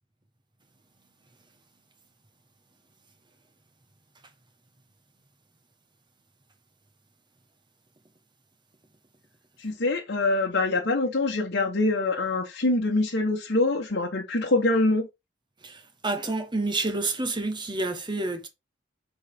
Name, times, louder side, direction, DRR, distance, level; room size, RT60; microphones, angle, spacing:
voice 1, 9.6-15.1, left 2 dB, 60° left, 1.2 m, -24 dB
voice 2, 15.6-18.5, right 2 dB, 25° right, 1.4 m, -29 dB
6.4 x 4.1 x 5.0 m
head